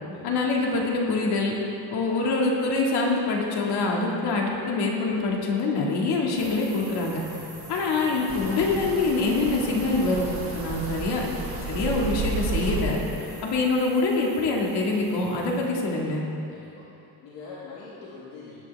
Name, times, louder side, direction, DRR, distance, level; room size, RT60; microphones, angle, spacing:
voice 1, 0.2-1.5 1.9-7.2 7.7-10.3 10.5-11.3 11.7-13.0 13.4-16.2, left 3 dB, 65° left, -2 dB, 2.2 m, -25 dB
sound 1, 6.4-15.7, right 1 dB, 5° right, 1.8 m, -44 dB
voice 2, 7.3-7.7 13.2-13.4 16.5-16.9 17.2-18.6, left 4 dB, 85° left, -7 dB, 2.2 m, -44 dB
sound 2, 8.3-12.8, right 4 dB, 30° right, 1.4 m, -32 dB
19.5 x 9.2 x 3.5 m, 2.7 s
cardioid pair, 160°, 42 cm